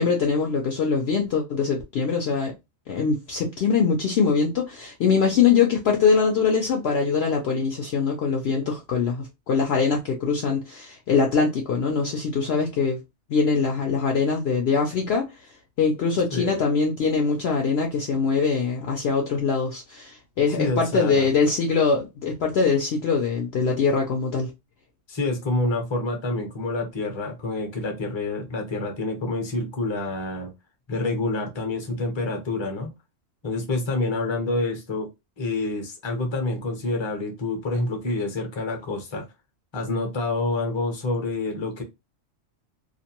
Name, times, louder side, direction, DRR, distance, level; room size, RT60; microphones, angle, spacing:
voice 1, 0.0-2.5 2.9-13.0 13.3-15.3 15.8-24.5, left 5 dB, 65° left, 0.7 m, -23 dB
voice 2, 20.6-21.3 25.1-30.5 30.9-32.9 33.4-35.1 35.4-39.2 39.7-41.8, left 2 dB, 25° left, 0.6 m, -27 dB
2.5 x 2.1 x 2.8 m
omnidirectional pair, 1.4 m